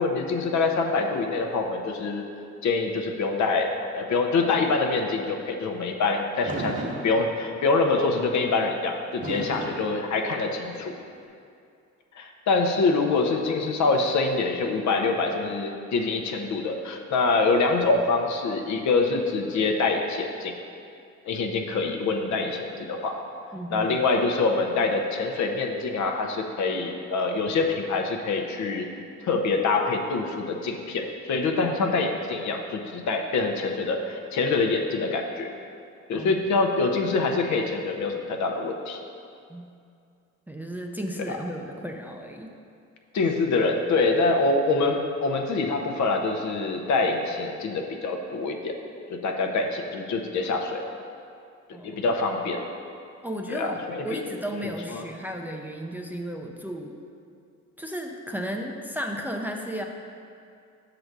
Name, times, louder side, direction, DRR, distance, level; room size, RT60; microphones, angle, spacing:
voice 1, 0.0-2.2 2.6-10.9 12.2-20.5 21.3-23.1 23.7-28.9 29.2-35.5 36.1-39.0 41.3-41.4 43.1-48.7 49.1-50.8 51.8-52.6 53.5-54.2 54.5-55.0, left 3 dB, 70° left, 3 dB, 0.8 m, -25 dB
Fireworks, 6.5-7.8 9.2-10.8, right 2 dB, 25° right, 0.9 m, -35 dB
voice 2, 23.5-23.9 36.1-36.4 39.5-39.7 40.5-42.5 51.7-52.0 53.2-53.8 54.0-56.9 57.8-59.9, equal, 5° right, 1 dB, 0.5 m, -34 dB
6.6 x 4.0 x 6.0 m, 2.4 s
cardioid pair, 90°, 30 cm